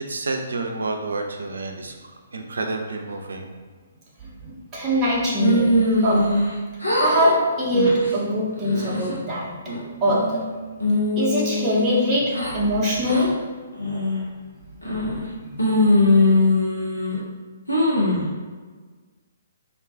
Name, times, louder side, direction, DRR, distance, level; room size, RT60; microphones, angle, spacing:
voice 1, 0.1-3.5, right 3 dB, 70° right, 3 dB, 0.4 m, -30 dB
voice 2, 4.4-6.4 7.0-9.5 10.0-10.4 11.2-13.4 15.5-15.6, equal, 20° right, -7 dB, 0.6 m, -22 dB
sound 1, 5.4-6.5 6.8-7.3 7.7-8.1 8.6-9.1 9.7-10.4 10.8-12.5 13.0-13.2 13.8-14.2 14.8-15.3 15.6-17.2 17.7-18.3, left 1 dB, 90° left, 0.8 m, -21 dB
2.3 x 2.3 x 3.6 m, 1.4 s
figure-of-eight pair, 125°, 0 cm